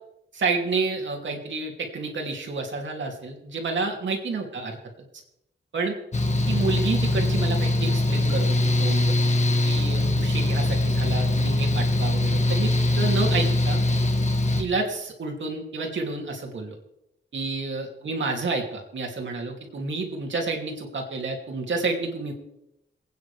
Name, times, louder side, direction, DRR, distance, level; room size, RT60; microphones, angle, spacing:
voice 1, 0.3-4.8 5.7-6.0 6.5-9.1 9.6-13.8 14.6-16.7 17.3-22.3, right 3 dB, 80° right, 2 dB, 2.9 m, -29 dB
Mechanical fan, 6.1-14.6, left 1 dB, 35° left, 1.6 m, -22 dB
28.0 x 9.5 x 3.5 m, 0.86 s
wide cardioid pair, 105°, 19 cm